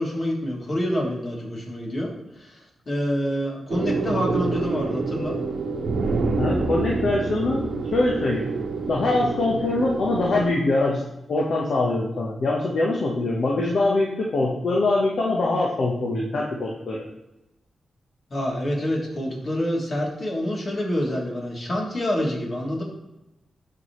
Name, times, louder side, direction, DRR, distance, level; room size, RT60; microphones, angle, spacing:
voice 1, 0.0-5.4 18.3-22.8, equal, 50° left, -2 dB, 3.2 m, -27 dB
sound 1, 3.7-10.5, right 3 dB, 75° right, 0.9 m, -27 dB
voice 2, 6.4-7.6 7.9-8.5 8.9-11.0 11.3-17.0, left 2 dB, 70° left, -2 dB, 1.2 m, -23 dB
12.0 x 5.0 x 3.2 m, 0.92 s
cardioid pair, 55°, 0 cm